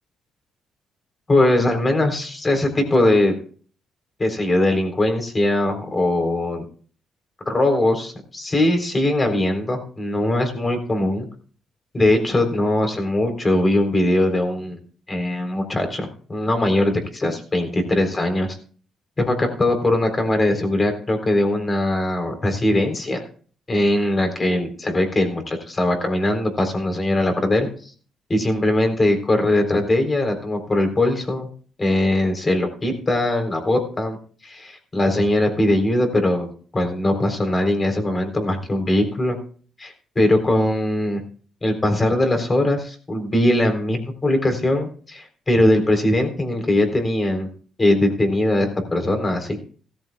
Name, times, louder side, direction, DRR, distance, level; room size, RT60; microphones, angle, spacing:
voice 1, 1.3-3.4 4.2-6.6 7.5-11.3 11.9-14.8 15.1-18.6 19.2-23.2 23.7-27.7 28.3-31.5 31.8-34.2 34.4-39.4 39.8-41.2 41.6-47.5 47.8-49.6, left 1 dB, 25° left, 5 dB, 3.9 m, -21 dB
16.5 x 14.0 x 2.4 m, 0.43 s
cardioid pair, 90°, 0 cm